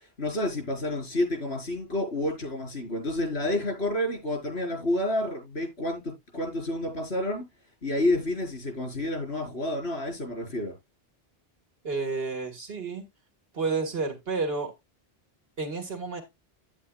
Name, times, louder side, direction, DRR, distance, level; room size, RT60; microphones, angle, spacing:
voice 1, 0.2-6.0 6.3-7.4 7.8-10.7, left 1 dB, 85° left, 4.9 m, -29 dB
voice 2, 11.8-13.1 13.5-14.7 15.6-16.2, right 4 dB, 70° right, 2.0 m, -30 dB
10.5 x 9.4 x 2.3 m
omnidirectional pair, 1.1 m